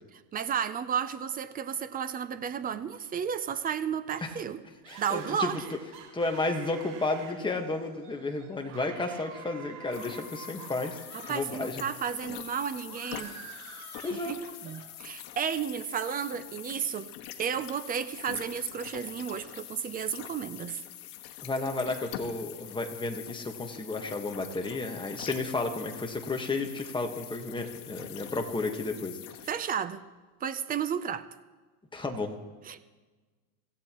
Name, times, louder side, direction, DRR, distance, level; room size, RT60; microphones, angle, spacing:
voice 1, 0.1-4.6 5.0-5.6 11.1-13.3 14.1-14.4 14.6-17.1 17.4-20.8 29.5-30.0 30.4-31.3 32.7-32.9, right 8 dB, 20° right, 12 dB, 0.5 m, -33 dB
sound 1, 4.8-11.4 11.7-14.9, right 6 dB, 55° right, 5.0 m, -49 dB
voice 2, 4.9-5.6 6.1-11.0 11.3-11.8 14.0-14.3 21.4-29.5 31.9-32.4, left 3 dB, 10° left, 3 dB, 1.4 m, -32 dB
sound 2, 9.9-29.5, left 12 dB, 65° left, 1.7 m, -44 dB
25.0 x 16.0 x 3.0 m, 1.3 s
supercardioid pair, 140°, 46 cm